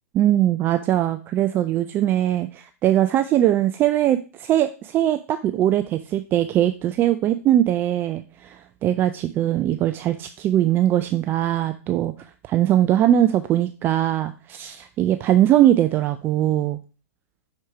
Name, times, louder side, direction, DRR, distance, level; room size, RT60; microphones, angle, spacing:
voice 1, 0.1-12.1 12.5-16.8, right 12 dB, 25° right, 9 dB, 0.4 m, -21 dB
6.2 x 4.5 x 4.6 m, 0.34 s
hypercardioid pair, 120°, 8 cm